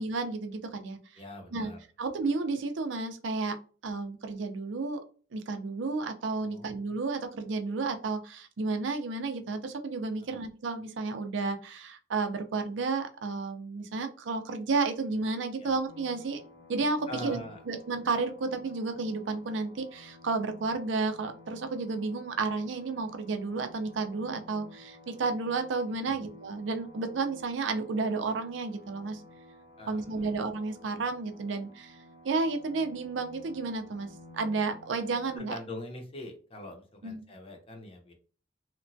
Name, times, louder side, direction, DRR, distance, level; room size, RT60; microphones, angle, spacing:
voice 1, 0.0-1.0 1.5-1.7 2.0-3.6 3.8-5.0 5.3-16.4 16.7-17.4 17.7-29.2 29.9-32.0 32.2-34.1 34.3-35.6 37.0-37.2, right 3 dB, 80° right, 7 dB, 0.5 m, -32 dB
voice 2, 1.2-1.8 6.4-6.8 10.2-10.4 15.6-15.7 17.1-17.6 26.0-26.3 29.8-30.3 35.3-38.1, left 1 dB, 30° left, 3 dB, 0.7 m, -43 dB
sound 1, 15.9-35.4, left 1 dB, 70° left, 0.7 m, -53 dB
2.9 x 2.2 x 2.6 m, 0.38 s
head